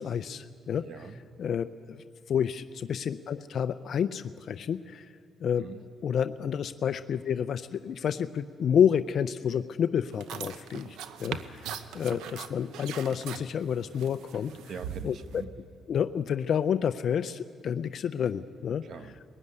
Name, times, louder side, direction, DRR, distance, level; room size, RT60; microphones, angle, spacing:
voice 1, 0.0-0.9 1.4-5.1 5.4-5.6 6.0-14.5 15.0-15.4 15.9-18.8, left 8 dB, 60° left, 11 dB, 0.5 m, -29 dB
voice 2, 0.8-1.2 5.6-5.9 14.7-15.6 18.8-19.2, right 6 dB, 60° right, 10 dB, 1.2 m, -43 dB
sound 1, 10.1-15.4, right 8 dB, 85° right, 0.9 m, -41 dB
21.0 x 16.0 x 9.8 m, 2.2 s
cardioid pair, 90°, 0 cm